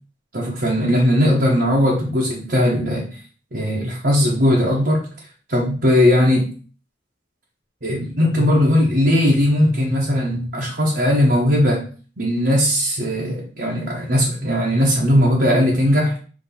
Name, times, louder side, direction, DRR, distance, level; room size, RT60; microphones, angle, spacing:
voice 1, 0.3-3.1 3.5-5.0 5.5-6.5 7.8-11.8 12.2-16.1, left 1 dB, 55° right, -3 dB, 1.2 m, -18 dB
7.2 x 3.1 x 4.4 m, 0.39 s
head